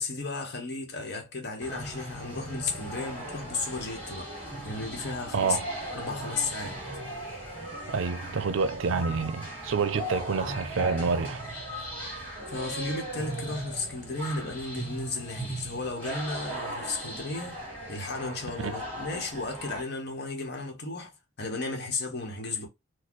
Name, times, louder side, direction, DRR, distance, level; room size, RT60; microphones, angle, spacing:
voice 1, 0.0-4.3 4.6-5.6 5.9-6.8 12.5-17.6 17.9-22.7, left 3 dB, 55° left, 1.1 m, -34 dB
sound 1, 1.6-19.8, right 1 dB, 10° left, 2.2 m, -38 dB
voice 2, 5.3-5.7 7.9-11.4 18.6-18.7, right 5 dB, 80° right, 0.5 m, -28 dB
4.1 x 2.3 x 3.0 m
head